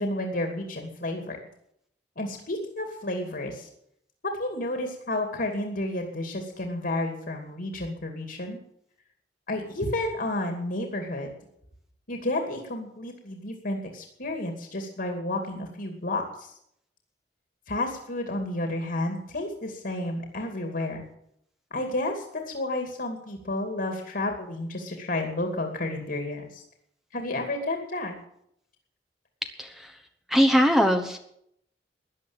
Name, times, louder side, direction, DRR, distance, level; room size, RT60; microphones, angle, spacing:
voice 1, 0.0-1.4 2.2-3.7 4.2-8.6 9.5-11.3 12.1-16.5 17.7-21.0 21.7-26.6 27.1-28.2, left 1 dB, 60° left, 4 dB, 2.5 m, -31 dB
voice 2, 29.4-30.0 30.3-31.2, equal, ahead, 5 dB, 1.1 m, -22 dB
13.5 x 10.5 x 8.9 m, 0.73 s
head